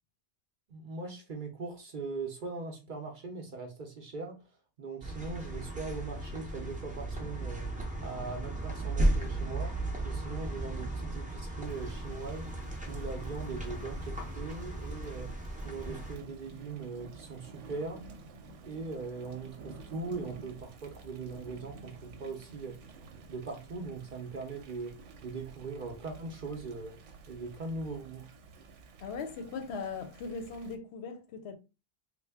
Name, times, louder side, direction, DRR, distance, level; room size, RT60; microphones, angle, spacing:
voice 1, 0.7-4.4 4.8-7.7 8.0-9.7 10.0-12.5 12.9-15.3 15.6-18.0 18.6-22.8 23.3-27.0 27.3-28.3, right 4 dB, 55° right, 0.7 m, -40 dB
sound 1, 5.0-16.2, right 1 dB, 10° right, 0.4 m, -35 dB
Thunder / Rain, 11.6-30.8, right 3 dB, 85° right, 0.9 m, -52 dB
voice 2, 29.0-31.6, left 4 dB, 70° left, 0.8 m, -39 dB
3.3 x 2.1 x 3.4 m
omnidirectional pair, 1.2 m